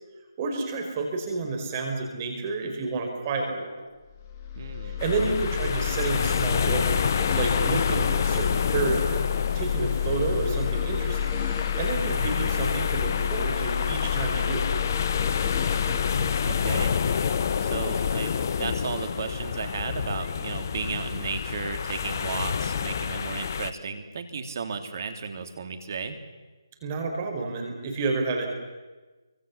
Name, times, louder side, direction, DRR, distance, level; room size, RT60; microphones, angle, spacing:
voice 1, 0.4-3.7 4.8-6.9 7.3-9.3 9.5-11.4 11.8-14.7 26.8-28.5, right 3 dB, 25° right, 3 dB, 5.1 m, -30 dB
sound 1, 4.1-19.6, left 9 dB, 25° left, 2.7 m, -30 dB
voice 2, 4.5-5.0 16.5-16.9 17.6-26.2, right 5 dB, 45° right, 6 dB, 3.2 m, -34 dB
sound 2, 5.0-23.7, left 6 dB, 40° left, 0.9 m, -29 dB
29.0 x 25.0 x 7.3 m, 1.2 s
figure-of-eight pair, 150°, 2 cm